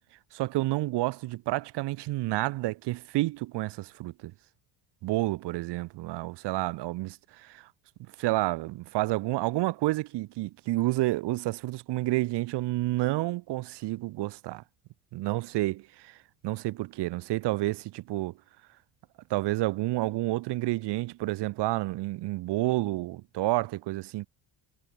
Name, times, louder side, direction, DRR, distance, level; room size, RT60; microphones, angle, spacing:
voice 1, 0.3-4.3 5.0-7.7 8.2-14.6 15.1-16.2 16.4-18.3 19.3-24.3, right 18 dB, 70° right, 6.2 m, -30 dB
cardioid pair, 150°, 42 cm